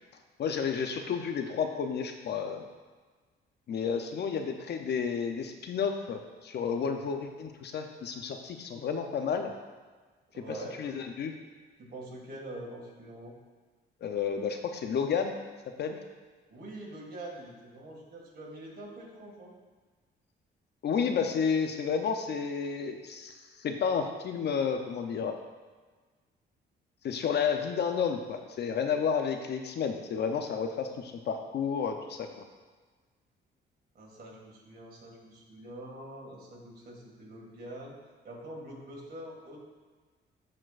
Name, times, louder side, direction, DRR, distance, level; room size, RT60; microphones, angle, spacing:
voice 1, 0.4-2.6 3.7-9.5 10.5-11.3 14.0-15.4 15.8-16.0 20.8-25.4 27.0-32.4, left 6 dB, 60° left, 5 dB, 0.6 m, -31 dB
voice 2, 10.3-10.9 11.8-13.3 16.5-19.5 33.9-38.0 38.2-39.6, right 1 dB, 50° right, -1 dB, 2.1 m, -44 dB
12.0 x 4.4 x 2.5 m, 1.4 s
cardioid pair, 90°, 20 cm